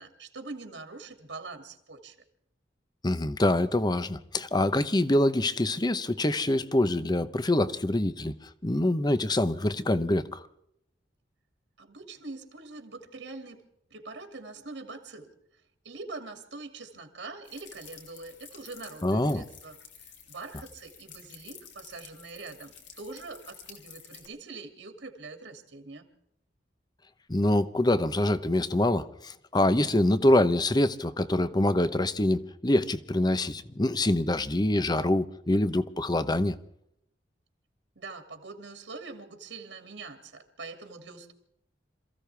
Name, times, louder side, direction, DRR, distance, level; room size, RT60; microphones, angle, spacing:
voice 1, 0.0-2.2 11.8-13.6 13.9-15.3 15.8-26.0 38.0-41.3, right 3 dB, 75° right, 2.5 m, -43 dB
voice 2, 3.0-8.3 8.6-10.5 19.0-19.4 27.3-36.6, left 1 dB, 20° left, 0.8 m, -25 dB
sound 1, 17.4-24.3, left 7 dB, 75° left, 3.3 m, -51 dB
27.5 x 15.5 x 3.4 m
head